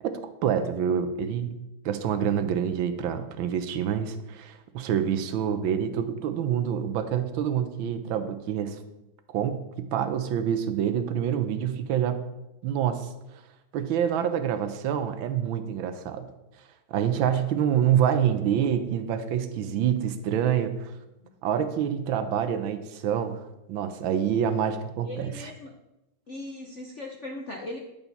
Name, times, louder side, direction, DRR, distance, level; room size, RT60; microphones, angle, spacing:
voice 1, 0.0-1.5 1.8-8.8 9.3-12.2 12.6-13.1 13.7-16.3 16.9-20.9 21.4-23.4 23.7-25.5, right 9 dB, 70° right, 10 dB, 1.4 m, -27 dB
voice 2, 25.0-25.7 26.3-27.8, left 2 dB, 60° left, 2 dB, 0.7 m, -39 dB
10.5 x 7.1 x 4.1 m, 0.93 s
omnidirectional pair, 2.4 m